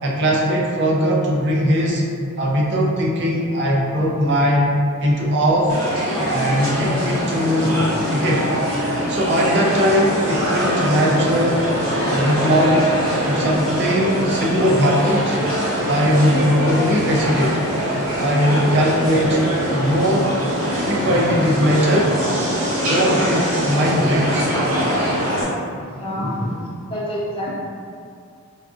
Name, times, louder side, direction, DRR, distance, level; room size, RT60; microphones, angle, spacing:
voice 1, 0.0-2.0 2.4-4.7 5.0-5.7 6.3-8.5 9.1-11.7 12.1-12.8 13.2-15.4 15.8-17.6 18.2-19.4 19.7-20.4 20.8-22.1 22.5-24.5, equal, 50° right, -2 dB, 0.5 m, -19 dB
sound 1, 5.7-25.4, equal, 75° right, 0.8 m, -23 dB
voice 2, 25.9-26.5 26.9-27.5, equal, 25° left, -5 dB, 0.5 m, -27 dB
3.9 x 2.3 x 2.4 m, 2.3 s
head